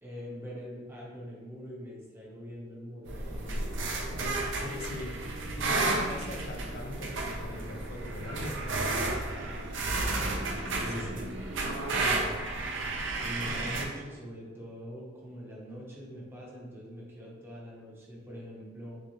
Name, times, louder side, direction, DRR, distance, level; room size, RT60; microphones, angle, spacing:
voice 1, 0.0-3.7 10.7-11.3 13.2-19.0, equal, 15° right, -5 dB, 0.9 m, -43 dB
sound 1, 3.1-13.9, right 2 dB, 80° right, 0.6 m, -32 dB
voice 2, 4.2-5.1 5.6-8.6 10.1-11.1 11.8-12.2 13.4-13.7, left 1 dB, 55° left, 2 dB, 0.6 m, -41 dB
6.2 x 2.4 x 3.0 m, 1.4 s
head